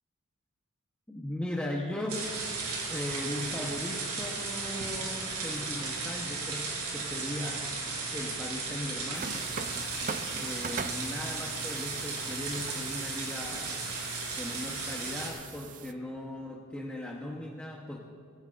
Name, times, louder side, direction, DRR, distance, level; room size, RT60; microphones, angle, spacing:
voice 1, 1.1-2.3 2.9-7.7 8.1-9.4 10.3-13.9 14.4-18.0, left 1 dB, 5° left, -2 dB, 0.9 m, -38 dB
sound 1, 2.1-15.3, right 3 dB, 90° right, 3.9 m, -35 dB
sound 2, 9.1-15.9, right 5 dB, 35° right, 0.5 m, -42 dB
21.5 x 17.0 x 2.5 m, 2.5 s
head